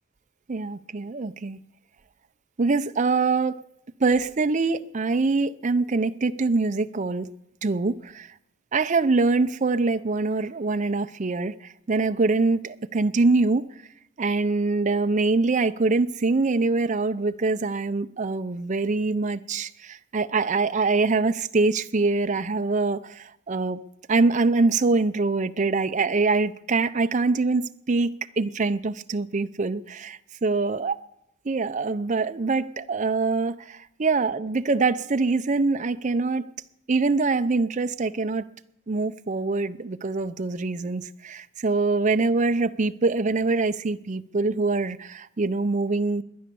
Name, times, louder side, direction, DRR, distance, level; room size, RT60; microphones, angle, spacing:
voice 1, 0.5-1.6 2.6-3.6 4.0-7.3 7.6-8.3 8.7-13.7 14.2-23.8 24.1-31.0 31.4-36.5 36.9-38.5 38.9-46.2, right 3 dB, 35° right, 0.5 m, -24 dB
21.5 x 9.6 x 6.9 m
head